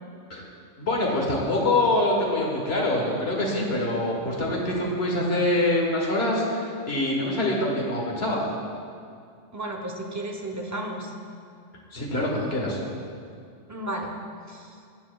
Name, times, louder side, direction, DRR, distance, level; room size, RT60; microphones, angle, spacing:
voice 1, 0.8-8.4 11.9-12.8, left 1 dB, 55° left, -2 dB, 1.6 m, -25 dB
voice 2, 9.5-11.1 13.7-14.1 14.5-14.7, right 1 dB, 20° right, 1 dB, 0.5 m, -33 dB
14.5 x 7.1 x 2.3 m, 2.4 s
omnidirectional pair, 1.3 m